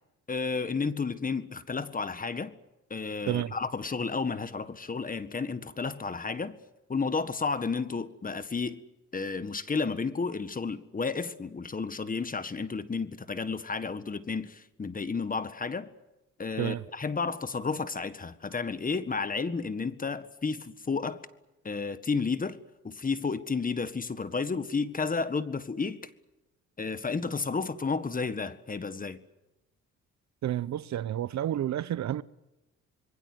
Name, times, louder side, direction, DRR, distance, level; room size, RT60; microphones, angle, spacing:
voice 1, 0.3-2.5 2.9-6.5 6.9-8.8 9.1-15.9 16.4-21.2 21.6-22.6 22.8-26.0 26.8-29.2, left 4 dB, 30° left, 1.6 m, -32 dB
voice 2, 30.4-32.2, right 12 dB, 65° right, 0.9 m, -30 dB
26.0 x 22.5 x 8.0 m
cardioid pair, 90°, 30 cm